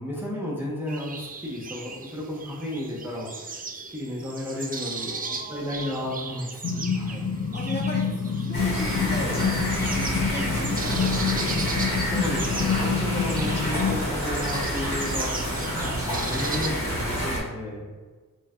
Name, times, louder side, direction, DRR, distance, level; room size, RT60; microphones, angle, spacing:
voice 1, 0.0-3.6 3.9-7.3 12.0-17.9, left 1 dB, 5° right, -5 dB, 0.8 m, -33 dB
sound 1, 0.9-16.7, right 4 dB, 25° right, 0.4 m, -37 dB
voice 2, 4.7-6.1 7.5-9.5 9.8-11.8, equal, 30° left, -4 dB, 1.0 m, -37 dB
sound 2, 6.6-14.0, left 6 dB, 50° left, 0.6 m, -27 dB
sound 3, 8.5-17.4, equal, 90° left, 1.0 m, -28 dB
3.1 x 2.1 x 3.6 m, 1.4 s
cardioid pair, 40°, 35 cm